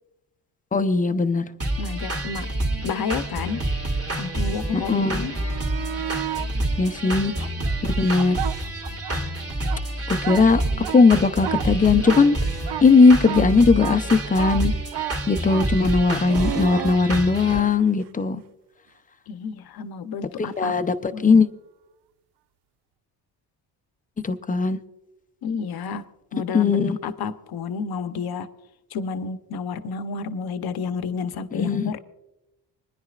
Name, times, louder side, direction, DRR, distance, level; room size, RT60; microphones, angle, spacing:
voice 1, 0.7-1.5 4.7-5.3 6.8-7.3 7.8-8.4 10.1-10.6 10.9-12.4 12.8-14.7 15.3-18.4 20.6-21.5 24.2-24.8 26.5-27.0 31.5-31.9, left 4 dB, 20° left, 9 dB, 0.6 m, -18 dB
sound 1, 1.6-17.6, right 1 dB, 35° right, 2.5 m, -28 dB
voice 2, 1.8-2.5 2.8-3.7 4.1-5.4 7.0-7.1 19.3-20.7 21.1-21.4 25.4-26.1 26.3-28.5 28.9-32.0, left 5 dB, 55° left, 10 dB, 0.9 m, -30 dB
sound 2, 5.3-6.5 7.1-9.2 9.5-17.7 20.5-20.6, right 12 dB, 65° right, 0.6 m, -32 dB
25.5 x 10.5 x 2.4 m, 0.93 s
cardioid pair, 100°, 44 cm